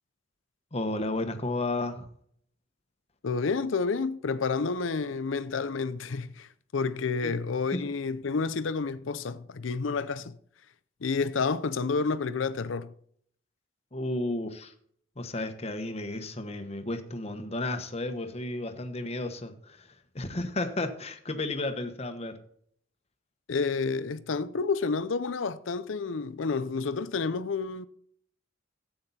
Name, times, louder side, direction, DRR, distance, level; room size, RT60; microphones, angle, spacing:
voice 1, 0.7-2.1 7.2-7.3 7.7-7.8 13.9-14.7 15.2-19.9 20.1-22.4, left 2 dB, 35° left, 1.3 m, -33 dB
voice 2, 3.2-10.3 11.0-12.9 23.5-27.9, left 4 dB, 80° left, 0.6 m, -30 dB
13.5 x 8.6 x 4.2 m
head